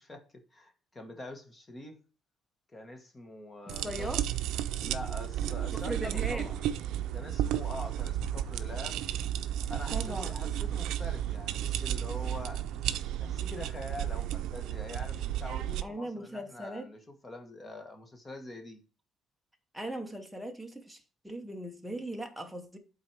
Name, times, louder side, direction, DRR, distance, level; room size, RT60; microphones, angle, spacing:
voice 1, 0.0-2.0 2.7-4.1 4.8-6.6 7.1-9.0 9.7-12.7 13.2-18.8, left 2 dB, 20° left, 1.2 m, -44 dB
voice 2, 3.7-4.2 5.7-6.5 9.9-10.3 15.8-16.9 19.7-22.8, right 1 dB, ahead, 0.8 m, -39 dB
sound 1, 3.7-15.8, right 11 dB, 80° right, 0.4 m, -33 dB
8.9 x 4.0 x 4.5 m
cardioid pair, 160°, 0 cm